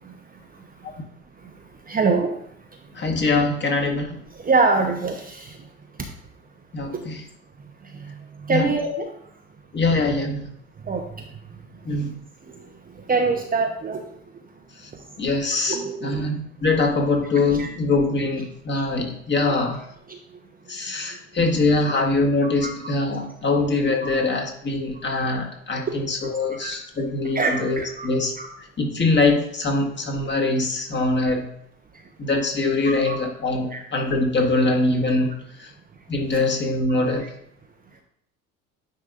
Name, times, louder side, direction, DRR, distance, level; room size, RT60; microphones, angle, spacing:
voice 1, 1.9-2.3 4.4-5.6 7.9-8.1 8.4-9.1 10.9-11.0 12.5-12.6 13.1-14.0 15.7-16.2 17.6-17.7 18.7-18.8 19.5-19.6 20.1-20.2 22.6-22.7 24.0-24.1 26.6-26.8 27.3-28.1 28.4-28.5 31.2-31.3 32.9-33.2 33.7-33.8 36.3-36.4 37.2-37.3, right 4 dB, 20° right, 2 dB, 0.9 m, -24 dB
voice 2, 2.9-4.2 6.7-7.2 8.5-8.7 9.7-10.5 11.8-12.2 14.8-14.9 15.2-19.8 20.7-28.3 28.8-31.5 32.2-35.7 36.1-37.3, left 3 dB, 25° left, 2 dB, 1.7 m, -23 dB
9.6 x 4.8 x 2.6 m, 0.72 s
figure-of-eight pair, 65°, 43 cm